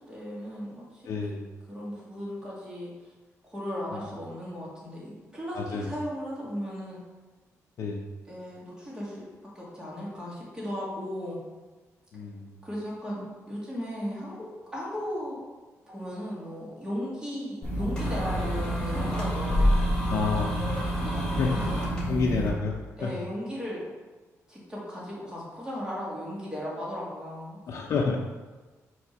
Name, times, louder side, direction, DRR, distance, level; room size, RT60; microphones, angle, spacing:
voice 1, 0.1-1.3 1.7-2.9 3.4-7.0 8.3-9.3 9.6-11.4 12.6-15.4 15.9-19.8 21.5-21.8 22.1-22.3 23.0-23.9 24.5-27.6, equal, 15° right, -6 dB, 2.2 m, -36 dB
voice 2, 1.1-1.5 3.9-4.0 5.5-5.9 7.8-8.0 12.1-12.6 20.1-20.5 21.4-21.5 22.1-22.7 23.0-23.1 27.7-28.2, left 4 dB, 60° left, -1 dB, 0.6 m, -29 dB
sound 1, 17.6-22.5, equal, 15° left, 2.0 m, -27 dB
6.3 x 3.5 x 5.8 m, 1.3 s
wide cardioid pair, 155°, 6 cm